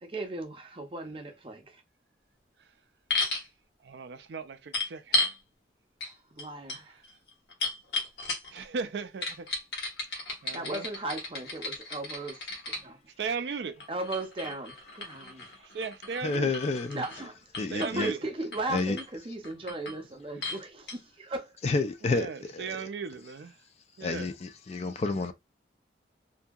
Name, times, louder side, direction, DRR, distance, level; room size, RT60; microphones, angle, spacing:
voice 1, 0.0-1.8 6.0-7.0 10.5-12.4 12.8-13.0 13.9-15.5 16.9-17.4 17.8-21.5, right 2 dB, 30° right, 0.6 m, -36 dB
sound 1, 3.1-3.5 4.7-5.4 6.0-6.1 6.4-8.6 9.2-12.8 13.8-17.3 17.5-18.1 18.5-19.1 19.4-20.0 20.4-20.6 20.9-21.0, left 3 dB, 75° left, 1.0 m, -34 dB
voice 2, 3.8-5.3 8.5-9.5 10.4-10.9 13.2-13.9 15.6-16.5 17.7-18.2 22.0-23.6 24.0-24.3, right 5 dB, 75° right, 0.4 m, -37 dB
voice 3, 16.2-17.0 17.6-18.1 18.7-19.0 21.6-22.8 24.0-25.3, left 3 dB, 35° left, 0.3 m, -30 dB
2.7 x 2.6 x 2.3 m
head